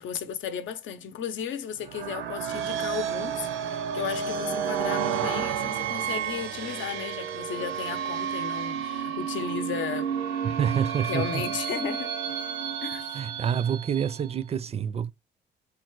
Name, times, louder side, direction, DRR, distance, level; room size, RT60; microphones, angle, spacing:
voice 1, 0.0-10.1 11.1-12.1 12.8-13.2, left 8 dB, 75° left, 0.7 m, -35 dB
sound 1, 1.8-14.3, right 8 dB, 85° right, 0.7 m, -31 dB
voice 2, 10.4-11.4 13.1-15.1, right 8 dB, 30° right, 0.4 m, -27 dB
4.0 x 2.3 x 4.5 m
cardioid pair, 90°, 20 cm